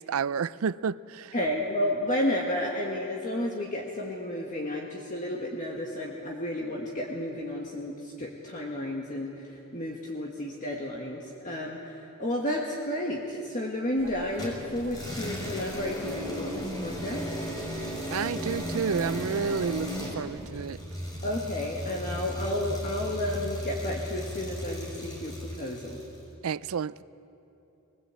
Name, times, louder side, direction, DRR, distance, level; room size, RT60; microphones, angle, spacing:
voice 1, 0.0-1.3 18.1-20.8 26.4-27.0, right 6 dB, 80° right, 0.4 m, -30 dB
voice 2, 1.3-17.3 21.2-26.0, left 1 dB, 40° left, 1.7 m, -32 dB
sound 1, 14.0-20.5, right 2 dB, 55° right, 1.9 m, -46 dB
sound 2, 14.4-26.2, equal, 20° left, 5.9 m, -36 dB
22.5 x 19.5 x 8.3 m
head